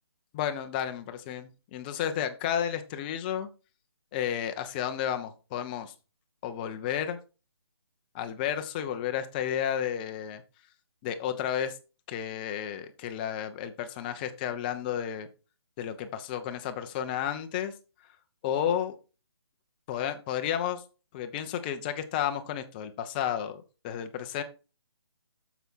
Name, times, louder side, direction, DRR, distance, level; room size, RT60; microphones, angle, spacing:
voice 1, 0.3-3.5 4.1-5.9 6.4-7.2 8.1-10.4 11.0-11.8 12.1-15.3 15.8-17.7 18.4-18.9 19.9-20.8 21.1-24.4, left 9 dB, 20° left, 8 dB, 0.9 m, -32 dB
8.0 x 7.0 x 4.5 m, 0.33 s
figure-of-eight pair, 150°, 14 cm